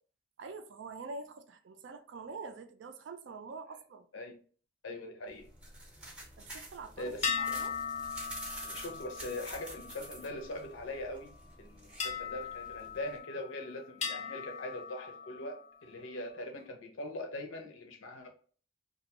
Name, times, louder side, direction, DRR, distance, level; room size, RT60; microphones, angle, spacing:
voice 1, 0.4-4.1 6.4-7.7, right 4 dB, 60° right, 0.4 m, -45 dB
voice 2, 4.8-5.5 7.0-7.3 8.6-18.3, left 1 dB, 80° left, 0.7 m, -42 dB
sound 1, 5.3-13.2, right 1 dB, 5° right, 0.6 m, -49 dB
sound 2, 7.2-10.9 12.0-13.5 14.0-15.7, left 6 dB, 35° left, 0.3 m, -39 dB
2.5 x 2.2 x 2.8 m
head